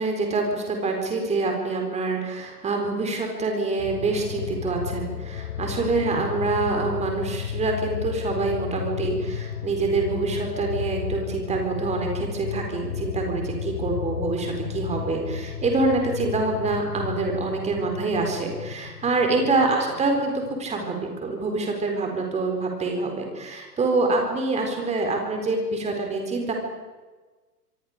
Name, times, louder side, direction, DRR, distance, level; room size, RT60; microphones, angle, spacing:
voice 1, 0.0-26.5, right 3 dB, 15° right, 2 dB, 4.4 m, -26 dB
sound 1, 3.8-21.3 21.7-21.8, left 9 dB, 60° left, 1.9 m, -33 dB
25.5 x 24.0 x 5.1 m, 1.3 s
figure-of-eight pair, 110°, 49 cm